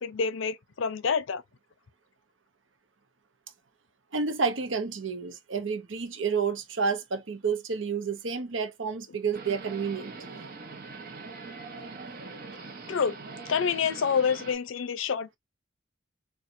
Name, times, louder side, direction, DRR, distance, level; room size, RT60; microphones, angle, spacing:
voice 1, 0.0-1.4 12.9-13.2 13.5-15.4, left 6 dB, 85° left, 0.5 m, -27 dB
voice 2, 4.1-10.2 11.7-11.9 12.2-12.3, right 5 dB, 80° right, 0.8 m, -30 dB
sound 1, 9.3-14.5, right 4 dB, 50° right, 0.8 m, -42 dB
4.2 x 2.3 x 2.5 m
head